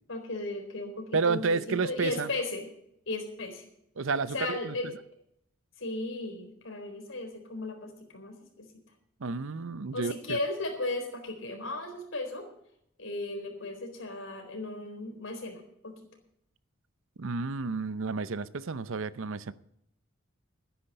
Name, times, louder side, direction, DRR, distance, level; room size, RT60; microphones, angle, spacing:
voice 1, 0.1-2.7 3.1-3.7 4.3-4.9 5.8-8.7 9.9-12.5 13.0-15.9, left 2 dB, 70° left, 4 dB, 4.1 m, -36 dB
voice 2, 1.1-2.3 4.0-4.7 9.2-10.4 17.2-19.5, right 4 dB, 70° right, 16 dB, 0.7 m, -31 dB
12.5 x 10.0 x 6.7 m, 0.72 s
head